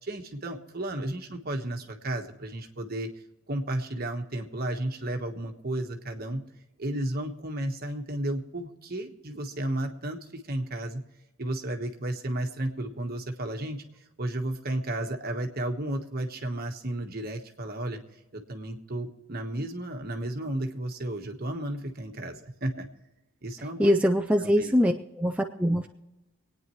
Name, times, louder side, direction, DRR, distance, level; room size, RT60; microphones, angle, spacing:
voice 1, 0.0-3.1 3.5-6.4 6.8-11.0 11.4-18.0 18.3-22.9 23.4-24.0 24.4-24.8, right 1 dB, 45° right, 4 dB, 1.3 m, -33 dB
voice 2, 23.8-25.9, equal, 5° right, 3 dB, 0.4 m, -23 dB
25.5 x 9.4 x 3.1 m, 1.0 s
head